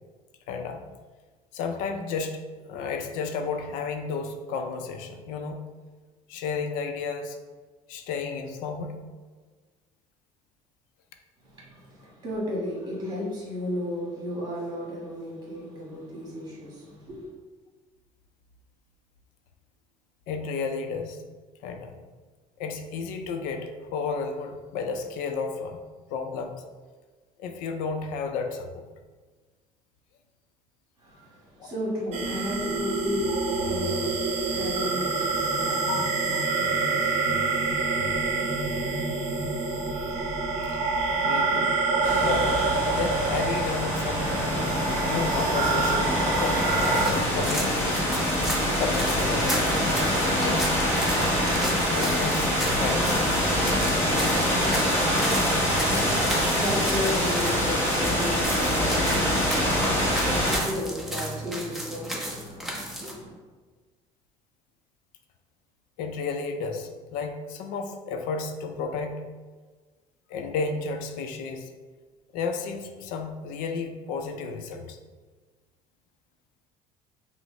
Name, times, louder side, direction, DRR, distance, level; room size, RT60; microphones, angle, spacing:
voice 1, 0.5-0.8 1.5-2.4 2.7-5.6 6.3-7.4 7.9-9.0 20.3-21.2 21.6-21.9 22.6-25.8 26.1-26.6 27.4-28.9 31.6-31.7 35.9-36.1 40.7-40.8 41.2-41.8 42.2-42.7 42.9-44.3 45.0-48.0 48.8-50.7 51.9-53.2 66.0-69.2 70.3-71.7 72.3-75.0, left 4 dB, 85° left, 5 dB, 0.5 m, -32 dB
voice 2, 11.4-17.3 31.0-39.0 55.8-63.4, left 1 dB, 30° right, -5 dB, 1.3 m, -34 dB
sound 1, 32.1-47.1, right 4 dB, 50° right, 0.7 m, -27 dB
sound 2, 42.0-60.6, equal, 15° left, 0.9 m, -25 dB
sound 3, 46.7-63.1, equal, ahead, 0.6 m, -35 dB
5.9 x 2.1 x 3.1 m, 1.4 s
cardioid pair, 160°, 14 cm